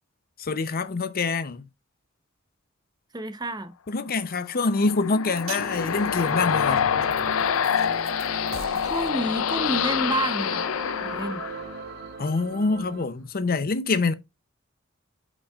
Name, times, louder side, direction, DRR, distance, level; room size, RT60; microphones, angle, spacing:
voice 1, 0.4-1.7 3.9-6.8 12.2-14.1, left 3 dB, 45° left, 0.6 m, -25 dB
voice 2, 3.1-3.7 8.8-10.6 11.0-11.4, right 2 dB, 20° right, 0.8 m, -29 dB
sound 1, 4.6-12.1, left 8 dB, 90° left, 0.5 m, -26 dB
sound 2, 5.4-11.7, right 7 dB, 75° right, 0.8 m, -46 dB
sound 3, 5.6-13.0, right 4 dB, 50° right, 0.5 m, -39 dB
8.3 x 5.4 x 2.4 m
head